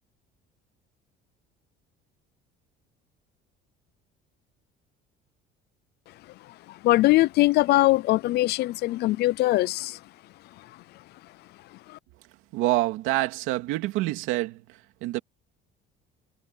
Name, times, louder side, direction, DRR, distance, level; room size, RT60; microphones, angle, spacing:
voice 1, 6.8-10.0, left 17 dB, 55° left, 0.5 m, -21 dB
voice 2, 12.5-14.6 15.0-15.2, right 18 dB, 85° right, 2.6 m, -26 dB
cardioid pair, 160°, 20 cm